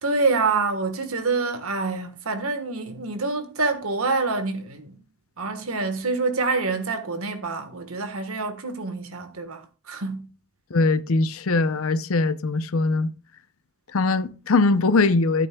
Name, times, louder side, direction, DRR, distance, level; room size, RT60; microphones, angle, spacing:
voice 1, 0.0-4.9 5.4-9.6 9.9-10.3, right 3 dB, 80° right, 1.5 m, -26 dB
voice 2, 10.7-13.1 13.9-15.5, left 3 dB, 75° left, 0.7 m, -21 dB
14.0 x 8.3 x 2.3 m
head